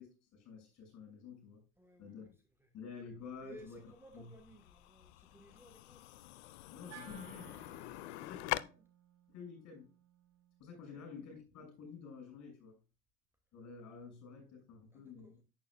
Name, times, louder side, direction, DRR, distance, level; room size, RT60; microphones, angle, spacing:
voice 1, 0.0-1.6 2.0-2.3 2.7-3.8 4.1-4.3 6.7-7.5 8.2-8.6 9.3-9.8 10.6-12.8 13.5-15.4, left 5 dB, 40° left, 6.3 m, -50 dB
voice 2, 1.8-2.3 2.6-2.7 3.4-6.1 8.0-8.8 10.9-11.1 14.9-15.4, equal, 5° right, 1.3 m, -58 dB
sound 1, 3.2-8.6, left 17 dB, 55° left, 0.6 m, -44 dB
Wind instrument woodwind instrument, 6.9-11.2, right 7 dB, 35° right, 3.0 m, -59 dB
11.0 x 9.2 x 2.4 m
figure-of-eight pair, 70°, 40 cm